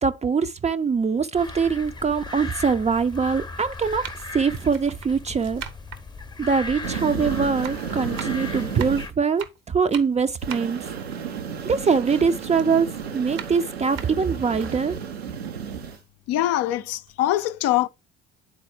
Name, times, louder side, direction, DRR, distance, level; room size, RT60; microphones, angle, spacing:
voice 1, 0.0-4.1 4.3-5.6 6.4-10.8 11.6-15.0, right 5 dB, 20° right, 0.5 m, -23 dB
sound 1, 1.0-1.1 2.0-2.1 3.1-3.3 3.8-7.2 7.4-12.0 12.4-14.7 15.2-15.3 15.6-16.6 16.9-17.1, right 9 dB, 60° right, 1.0 m, -41 dB
sound 2, 1.3-9.1, left 3 dB, 15° left, 0.8 m, -37 dB
sound 3, 6.8-9.1 10.4-16.0, right 7 dB, 85° right, 0.8 m, -33 dB
voice 2, 16.3-17.9, left 14 dB, 50° left, 0.5 m, -23 dB
10.0 x 4.1 x 3.3 m
figure-of-eight pair, 55°, 31 cm